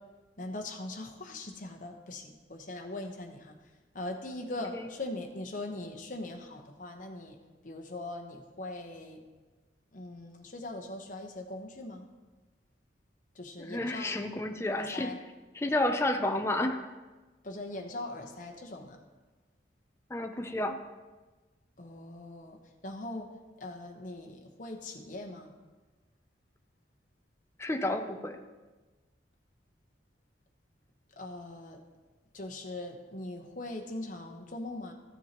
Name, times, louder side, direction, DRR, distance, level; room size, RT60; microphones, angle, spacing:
voice 1, 0.4-3.5 3.9-7.4 7.6-9.2 9.9-12.1 13.3-14.2 14.7-15.2 17.4-19.0 21.8-22.6 22.8-23.3 23.6-25.5 31.2-31.8 32.3-34.9, left 2 dB, 45° left, 3 dB, 1.0 m, -41 dB
voice 2, 13.6-15.1 15.5-16.9 20.1-20.8 27.6-28.4, left 1 dB, 15° left, 5 dB, 0.5 m, -31 dB
14.0 x 7.1 x 3.0 m, 1.2 s
head